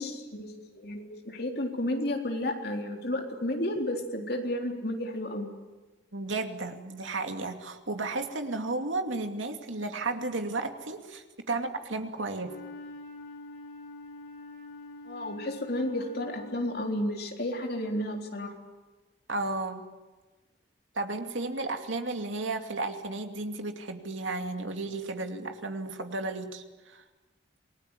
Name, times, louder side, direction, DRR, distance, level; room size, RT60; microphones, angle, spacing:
voice 1, 0.0-5.5 15.1-18.5, left 1 dB, 55° left, 2 dB, 3.8 m, -32 dB
voice 2, 6.1-12.5 19.3-19.8 20.9-27.0, right 2 dB, 85° right, 5 dB, 2.6 m, -33 dB
Wind instrument woodwind instrument, 12.4-16.9, left 2 dB, 75° left, 7.3 m, -45 dB
27.5 x 20.0 x 9.9 m, 1.2 s
head